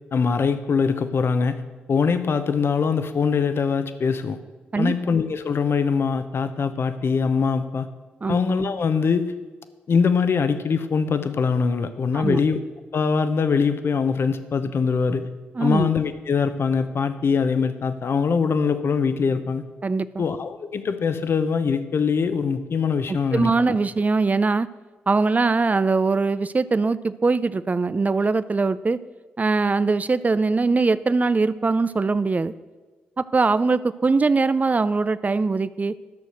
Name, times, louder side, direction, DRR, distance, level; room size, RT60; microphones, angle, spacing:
voice 1, 0.1-1.6 1.9-4.4 4.8-7.9 8.3-9.3 9.9-12.6 12.9-15.3 15.6-19.6 20.2-23.5, left 5 dB, 60° left, 10 dB, 0.9 m, -22 dB
voice 2, 15.6-15.9 19.8-20.2 23.1-24.7 25.1-29.0 29.4-32.5 33.2-35.9, right 3 dB, 35° right, 16 dB, 0.5 m, -21 dB
12.0 x 6.5 x 6.4 m, 1.3 s
hypercardioid pair, 40°, 5 cm